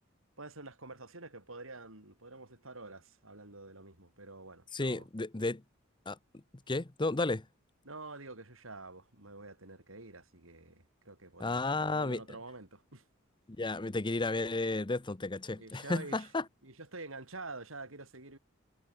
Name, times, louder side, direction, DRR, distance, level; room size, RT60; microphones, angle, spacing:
voice 1, 0.4-5.1 7.8-13.1 15.6-16.3 16.6-18.4, right 3 dB, 85° right, 7.0 m, -48 dB
voice 2, 4.7-5.6 6.1-6.2 6.7-7.4 11.4-12.2 13.6-16.4, left 2 dB, 25° left, 0.8 m, -32 dB
head